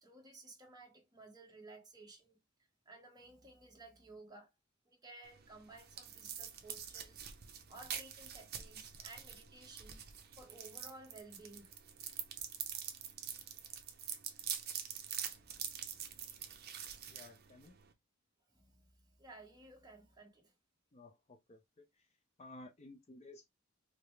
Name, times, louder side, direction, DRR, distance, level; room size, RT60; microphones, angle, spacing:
voice 1, 0.0-2.4 2.8-4.5 4.9-10.0 10.4-11.7 15.3-16.2 18.5-20.5, right 2 dB, 20° right, 1.2 m, -56 dB
sound 1, 5.2-17.9, right 9 dB, 50° right, 0.7 m, -45 dB
voice 2, 17.1-17.8 20.9-21.9 22.4-23.5, left 2 dB, 30° left, 0.6 m, -55 dB
4.8 x 2.2 x 3.1 m
head